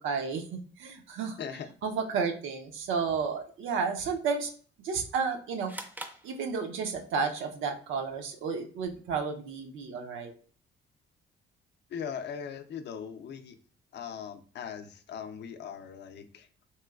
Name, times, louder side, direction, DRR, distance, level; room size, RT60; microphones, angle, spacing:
voice 1, 0.0-1.4 1.8-4.5 4.8-5.7 6.2-10.3, right 5 dB, 85° right, 4 dB, 0.5 m, -32 dB
sound 1, 5.7-7.1, right 1 dB, 10° right, 0.4 m, -44 dB
voice 2, 11.9-13.6 13.9-16.5, left 7 dB, 60° left, 9 dB, 0.5 m, -39 dB
3.0 x 3.0 x 2.3 m, 0.43 s
cardioid pair, 90°, 20 cm